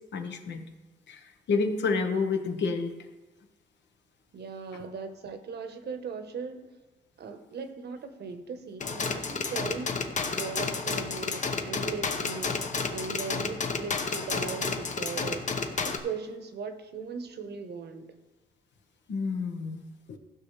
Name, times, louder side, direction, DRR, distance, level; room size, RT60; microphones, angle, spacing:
voice 1, 0.1-0.6 1.1-2.9 19.1-19.8 20.1-20.2, left 4 dB, 65° left, 5 dB, 1.1 m, -29 dB
voice 2, 4.3-6.7 7.2-10.0 10.3-12.6 12.9-15.5 15.8-18.1, right 5 dB, 55° right, 8 dB, 1.0 m, -38 dB
sound 1, 8.8-16.0, left 4 dB, 40° left, 0.9 m, -31 dB
14.5 x 6.0 x 3.2 m, 1.2 s
cardioid pair, 90°, 20 cm